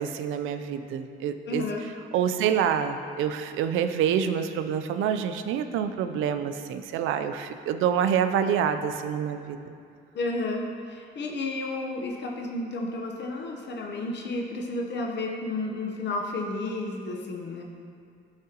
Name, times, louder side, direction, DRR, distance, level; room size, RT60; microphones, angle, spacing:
voice 1, 0.0-1.7 2.1-9.7, right 8 dB, 90° right, 9 dB, 0.5 m, -27 dB
voice 2, 1.5-1.9 10.1-17.6, left 2 dB, 60° left, 1 dB, 0.8 m, -32 dB
12.0 x 4.9 x 2.9 m, 2.3 s
cardioid pair, 90°, 20 cm